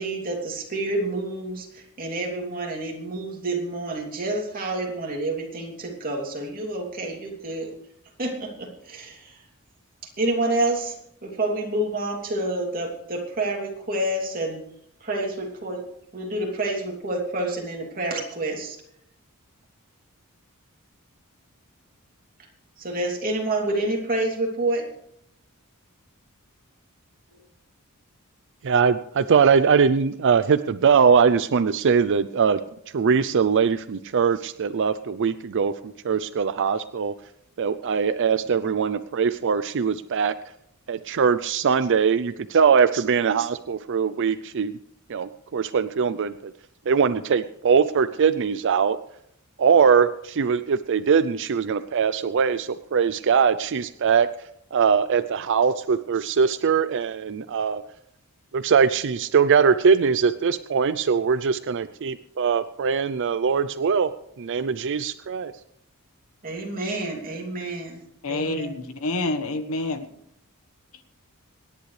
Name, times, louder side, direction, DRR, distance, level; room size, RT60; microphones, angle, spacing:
voice 1, 0.0-7.7 8.2-9.4 10.2-14.6 15.0-15.8 16.1-18.8 22.8-24.8 66.4-68.0 68.3-68.8, right 2 dB, 40° right, 0 dB, 2.9 m, -28 dB
voice 2, 28.6-32.6 32.9-37.1 37.6-40.3 40.9-44.8 45.1-46.5 46.9-49.0 49.6-54.3 54.7-57.8 58.5-64.1 64.4-65.5, right 6 dB, 55° right, 13 dB, 0.5 m, -21 dB
voice 3, 68.2-70.0, left 2 dB, 70° left, 8 dB, 1.3 m, -27 dB
25.5 x 10.5 x 3.3 m, 0.76 s
head